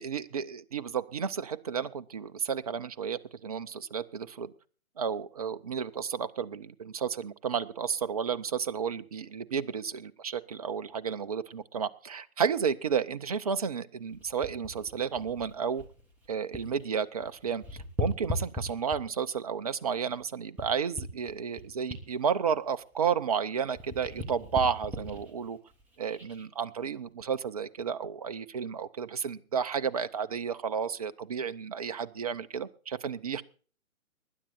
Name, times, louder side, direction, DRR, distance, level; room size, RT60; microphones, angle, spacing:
voice 1, 0.0-4.5 5.0-15.8 16.3-17.6 18.0-25.6 26.0-33.4, right 7 dB, 30° right, 12 dB, 0.6 m, -32 dB
sound 1, 14.1-16.9 17.1-19.3 19.8-23.4 23.7-26.5 27.0-27.2, left 1 dB, 5° right, 1.7 m, -39 dB
20.0 x 10.5 x 4.2 m, 0.40 s
figure-of-eight pair, 140°, 42 cm